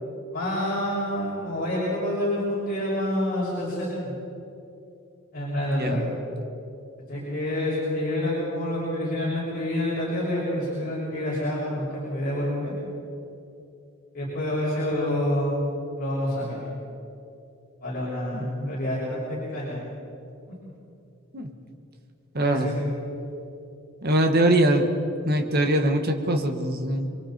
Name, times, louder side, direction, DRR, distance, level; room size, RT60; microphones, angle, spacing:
voice 1, 0.3-4.1 5.3-6.0 7.1-12.7 14.1-15.6 16.0-16.6 17.8-19.8 22.4-22.8, left 1 dB, 45° left, -7 dB, 6.6 m, -27 dB
voice 2, 5.6-6.0 18.3-18.7 21.3-21.5 22.3-22.7 24.0-24.8 25.3-27.1, right 1 dB, 50° right, 5 dB, 1.7 m, -23 dB
29.0 x 23.0 x 4.4 m, 2.8 s
head